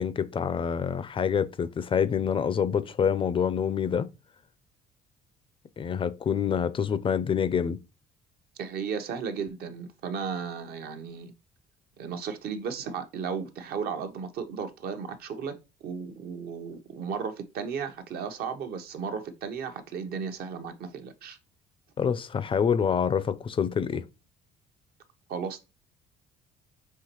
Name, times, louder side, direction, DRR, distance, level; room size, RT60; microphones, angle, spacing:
voice 1, 0.0-4.1 5.8-7.8 22.0-24.0, left 7 dB, 30° left, 0.4 m, -26 dB
voice 2, 8.6-11.3 12.0-15.6 15.8-21.4 25.3-25.6, right 6 dB, 65° right, 0.8 m, -35 dB
5.6 x 2.9 x 2.9 m
cardioid pair, 110°, 17 cm